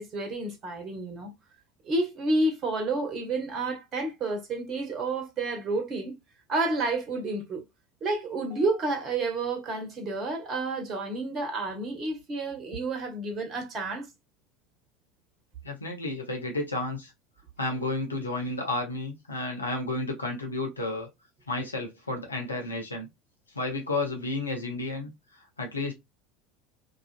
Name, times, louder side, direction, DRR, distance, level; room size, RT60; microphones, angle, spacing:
voice 1, 0.0-1.3 1.8-6.1 6.5-7.6 8.0-14.1, right 2 dB, 35° right, 0.8 m, -30 dB
voice 2, 15.6-17.1 17.6-21.1 21.5-23.1 23.5-25.9, left 2 dB, 85° left, 0.5 m, -32 dB
2.4 x 2.3 x 2.4 m
figure-of-eight pair, 70°, 0 cm